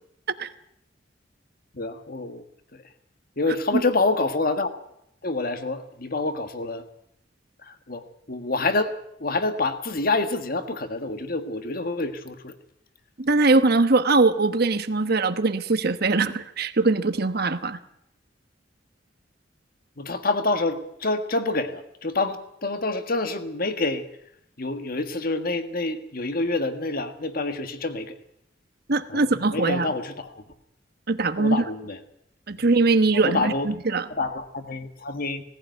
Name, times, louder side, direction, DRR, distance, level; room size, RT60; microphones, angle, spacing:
voice 1, 1.7-2.4 2.7-2.8 3.4-4.7 5.2-6.8 7.6-8.9 9.2-12.6 20.0-24.1 24.6-28.1 29.1-30.4 31.4-32.0 32.6-32.7 33.1-33.7 34.1-35.4, left 3 dB, 50° left, 9 dB, 1.7 m, -27 dB
voice 2, 13.2-17.8 28.9-29.9 31.1-31.6 32.5-34.0, right 3 dB, 55° right, 11 dB, 1.1 m, -21 dB
18.5 x 15.5 x 9.2 m, 0.77 s
head